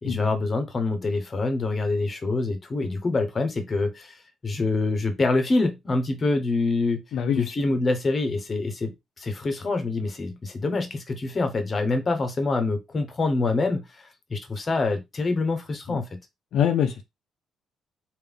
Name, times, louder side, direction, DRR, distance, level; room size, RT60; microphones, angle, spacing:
voice 1, 0.0-4.1 4.4-7.0 7.3-8.9 9.2-16.0, left 3 dB, 35° left, 1.0 m, -26 dB
voice 2, 7.1-7.5 15.9-16.0 16.5-17.0, left 8 dB, 75° left, 0.6 m, -24 dB
3.5 x 2.6 x 3.6 m
cardioid pair, 90°, 0 cm